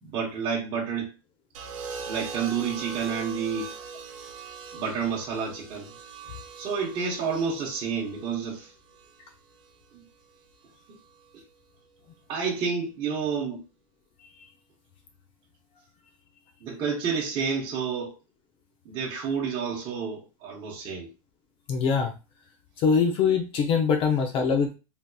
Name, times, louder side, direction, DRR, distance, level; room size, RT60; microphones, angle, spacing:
voice 1, 0.0-1.1 2.1-3.7 4.7-5.9 6.6-8.7 9.9-10.0 10.9-11.0 12.3-13.6 16.6-18.2 18.8-21.1, right 6 dB, 30° right, 0.9 m, -30 dB
sound 1, 1.5-9.7 10.9-11.3, right 5 dB, 65° right, 0.9 m, -41 dB
voice 2, 21.7-22.1 22.8-24.7, left 6 dB, 30° left, 0.4 m, -23 dB
3.4 x 2.8 x 2.3 m
supercardioid pair, 155°, 18 cm